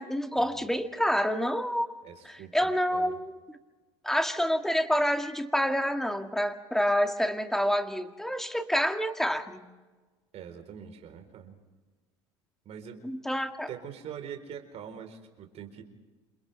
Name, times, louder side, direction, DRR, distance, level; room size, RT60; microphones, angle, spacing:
voice 1, 0.0-1.9 2.3-3.6 4.0-9.7 13.0-13.7, equal, 5° left, 6 dB, 2.1 m, -28 dB
voice 2, 2.0-2.6 2.9-3.1 10.3-11.6 12.7-13.1 13.7-15.8, right 8 dB, 50° right, 5 dB, 4.1 m, -43 dB
28.5 x 28.0 x 3.4 m, 1.3 s
hypercardioid pair, 80°, 14 cm